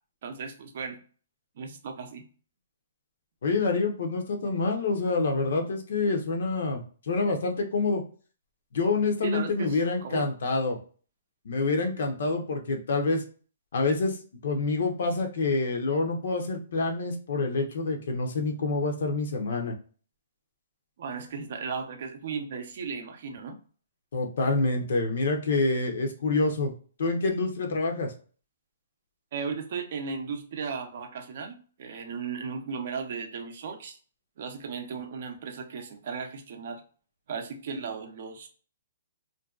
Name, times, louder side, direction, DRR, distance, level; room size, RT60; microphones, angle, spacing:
voice 1, 0.2-1.0 1.6-2.3 9.2-10.3 21.0-23.6 29.3-34.0 34.4-36.8 37.3-38.5, right 5 dB, 50° right, 5 dB, 0.5 m, -36 dB
voice 2, 3.4-8.0 8.7-10.8 11.4-13.2 13.7-19.7 24.1-26.7 27.0-28.1, left 3 dB, 65° left, 3 dB, 0.7 m, -27 dB
2.6 x 2.2 x 2.3 m, 0.41 s
hypercardioid pair, 165°, 0 cm